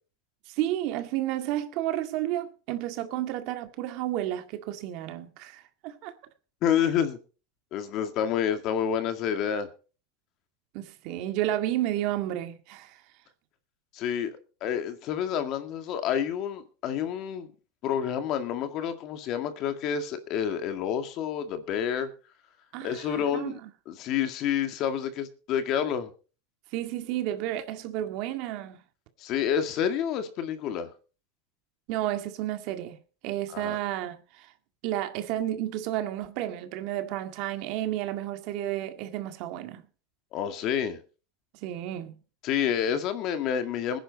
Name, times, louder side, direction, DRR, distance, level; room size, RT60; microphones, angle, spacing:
voice 1, 0.5-6.1 10.7-13.0 22.7-23.6 26.7-28.8 31.9-33.0 33.2-34.5 34.8-39.8 41.6-42.2, right 13 dB, 55° right, 1.9 m, -31 dB
voice 2, 6.6-7.2 7.7-9.7 13.9-17.5 17.8-22.1 22.8-23.6 23.9-26.1 29.2-30.9 33.5-33.8 40.3-41.0 42.4-44.0, left 8 dB, 45° left, 2.0 m, -29 dB
20.0 x 10.5 x 4.1 m
supercardioid pair, 140°, 0 cm